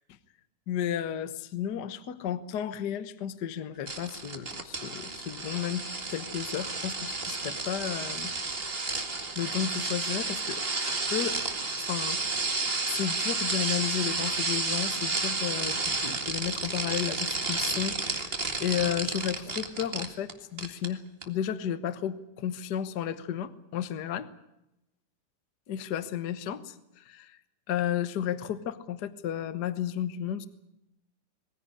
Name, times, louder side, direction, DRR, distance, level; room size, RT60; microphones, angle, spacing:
voice 1, 0.7-5.8 6.1-8.3 9.3-11.4 11.8-12.5 12.9-24.3 25.7-27.4 27.7-30.5, left 10 dB, 60° left, 13 dB, 1.0 m, -33 dB
sound 1, 3.9-20.3 20.6-20.9 21.2-21.3, right 3 dB, 20° right, 1.7 m, -31 dB
22.5 x 15.5 x 9.9 m, 0.87 s
omnidirectional pair, 3.7 m